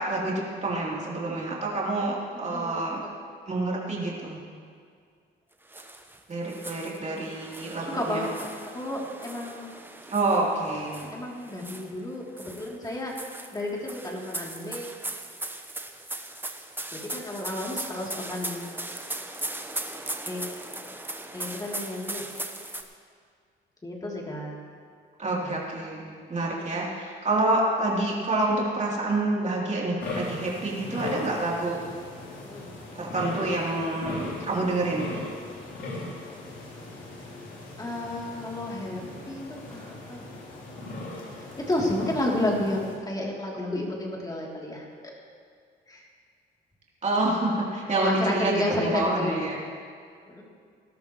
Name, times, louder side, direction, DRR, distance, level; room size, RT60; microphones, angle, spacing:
voice 1, 0.0-3.0 3.5-4.4 6.3-8.2 10.1-11.1 25.2-31.8 33.0-35.1 47.0-49.6, right 2 dB, 35° right, -4 dB, 3.5 m, -27 dB
voice 2, 2.5-2.8 7.8-9.7 11.1-13.2 13.5-14.9 16.9-18.8 20.3-20.5 21.3-22.3 23.8-24.6 25.4-25.6 32.4-32.6 34.0-34.5 37.8-40.3 41.3-45.1 45.9-46.1 47.9-49.5 50.3-50.4, left 1 dB, 20° left, -3 dB, 3.2 m, -32 dB
sound 1, 5.7-6.2 6.5-12.0 12.4-22.8, right 2 dB, 10° right, 1.1 m, -38 dB
sound 2, 30.0-42.9, left 2 dB, 75° left, 3.6 m, -38 dB
19.5 x 12.5 x 3.2 m, 2.1 s
cardioid pair, 90°, 20 cm